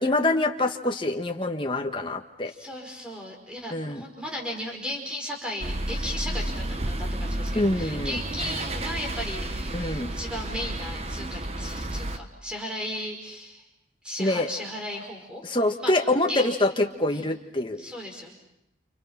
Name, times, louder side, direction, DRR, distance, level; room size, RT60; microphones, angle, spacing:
voice 1, 0.0-2.5 3.7-4.0 7.6-8.2 9.7-10.1 14.2-14.5 15.4-17.8, left 2 dB, 25° left, 4 dB, 1.7 m, -25 dB
voice 2, 2.4-13.6 14.0-15.4 15.8-17.3 17.8-18.3, left 1 dB, 5° right, 1 dB, 5.4 m, -36 dB
sound 1, 5.6-12.2, right 1 dB, 35° right, 1.2 m, -31 dB
30.0 x 29.0 x 5.9 m, 0.81 s
head